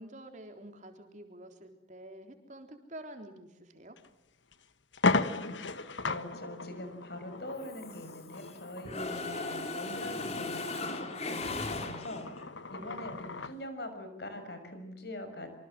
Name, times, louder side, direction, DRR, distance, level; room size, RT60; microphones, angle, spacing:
voice 1, 0.0-4.0 12.8-13.1, right 1 dB, 40° right, 5 dB, 3.8 m, -48 dB
sound 1, 4.0-4.1 4.5-4.6 4.9-13.6, left 3 dB, 80° left, 1.4 m, -36 dB
voice 2, 5.1-12.3 12.7-15.5, left 1 dB, 60° left, 8 dB, 6.2 m, -43 dB
Mechanisms, 7.6-8.5 8.8-12.4, left 3 dB, 35° left, 3.1 m, -37 dB
26.5 x 25.0 x 7.7 m, 0.84 s
head